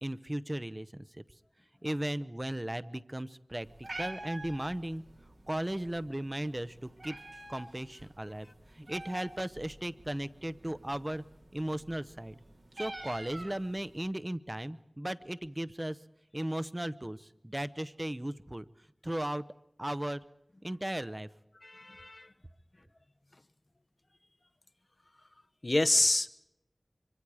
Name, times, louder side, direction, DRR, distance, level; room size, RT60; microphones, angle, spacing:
voice 1, 0.0-1.2 1.8-3.7 4.0-5.0 5.5-7.2 7.5-8.5 8.7-11.2 11.5-12.3 12.8-16.0 16.3-18.7 19.0-19.4 19.8-20.2 20.6-21.3, right 1 dB, 25° right, 15 dB, 0.7 m, -36 dB
Meow, 3.6-14.1, right 2 dB, 80° right, 2.6 m, -48 dB
voice 2, 21.6-22.3 25.6-26.3, left 2 dB, 45° left, 12 dB, 0.8 m, -27 dB
24.5 x 24.5 x 4.9 m, 0.84 s
wide cardioid pair, 45°, 0 cm